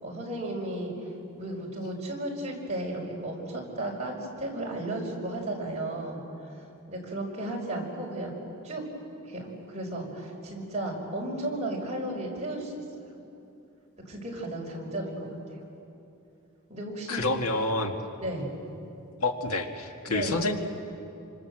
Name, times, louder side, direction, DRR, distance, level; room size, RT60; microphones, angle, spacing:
voice 1, 0.0-0.9 1.4-6.2 6.9-8.3 8.6-8.8 9.2-12.8 14.1-15.4 16.7-17.3 18.2-18.5 20.1-20.6, right 1 dB, 30° right, -2 dB, 5.3 m, -34 dB
voice 2, 17.1-17.9 19.2-20.5, left 2 dB, 85° left, 4 dB, 1.9 m, -28 dB
27.5 x 25.5 x 7.8 m, 2.8 s
head